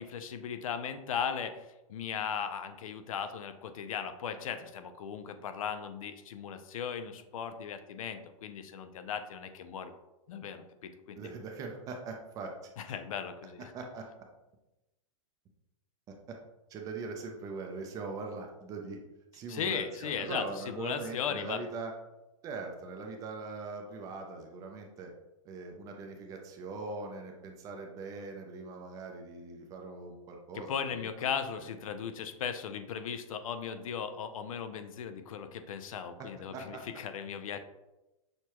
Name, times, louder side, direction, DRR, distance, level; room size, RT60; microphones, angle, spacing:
voice 1, 0.0-9.9 10.3-11.3 12.8-13.7 19.5-21.6 30.5-37.6, left 7 dB, 80° left, 10 dB, 0.5 m, -37 dB
voice 2, 11.2-12.5 13.7-14.0 16.1-16.2 16.7-19.0 19.3-21.9 22.4-25.1 25.4-31.0 36.5-36.8, right 3 dB, 20° right, 3 dB, 0.4 m, -41 dB
6.4 x 2.2 x 2.9 m, 0.99 s
supercardioid pair, 155°, 17 cm